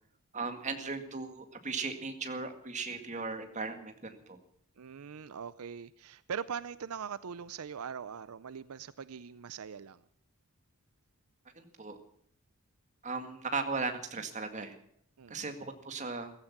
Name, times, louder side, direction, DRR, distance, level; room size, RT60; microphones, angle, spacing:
voice 1, 0.3-4.4 11.6-12.0 13.0-14.8 15.3-16.3, right 4 dB, 35° right, 7 dB, 2.1 m, -37 dB
voice 2, 4.8-10.0 15.2-15.5, right 7 dB, 80° right, 16 dB, 0.5 m, -42 dB
15.5 x 15.0 x 6.0 m, 0.67 s
head